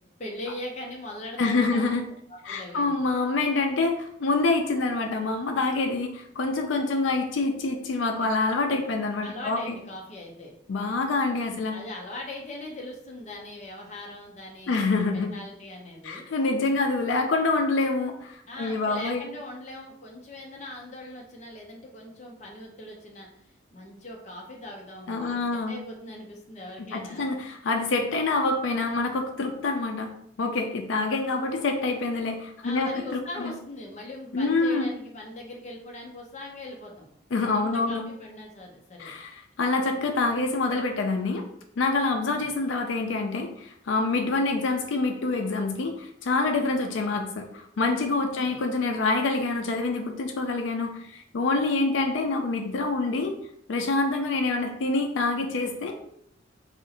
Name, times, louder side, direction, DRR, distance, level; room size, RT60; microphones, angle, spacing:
voice 1, 0.2-1.9 2.3-3.0 9.2-10.5 11.7-14.8 15.1-16.3 18.5-27.3 32.6-37.1 37.5-39.1 48.1-48.6, left 1 dB, 35° left, 0 dB, 0.6 m, -40 dB
voice 2, 1.4-2.1 2.4-9.7 10.7-11.7 14.7-15.3 16.0-19.3 25.1-25.8 26.8-30.1 30.4-33.5 34.3-34.9 37.3-38.0 39.0-41.4 41.8-53.3 53.7-56.0, left 3 dB, 85° left, 4 dB, 0.4 m, -26 dB
2.7 x 2.4 x 4.0 m, 0.71 s
head